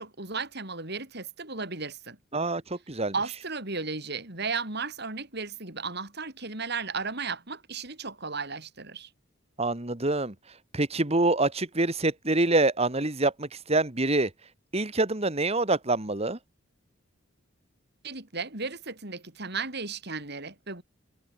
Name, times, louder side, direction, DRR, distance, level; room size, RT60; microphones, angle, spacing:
voice 1, 0.0-2.2 3.1-9.1 18.0-20.8, right 4 dB, 55° right, 6.6 m, -35 dB
voice 2, 2.3-3.1 9.6-10.3 10.7-14.3 14.7-16.4, right 2 dB, 30° right, 2.0 m, -26 dB
head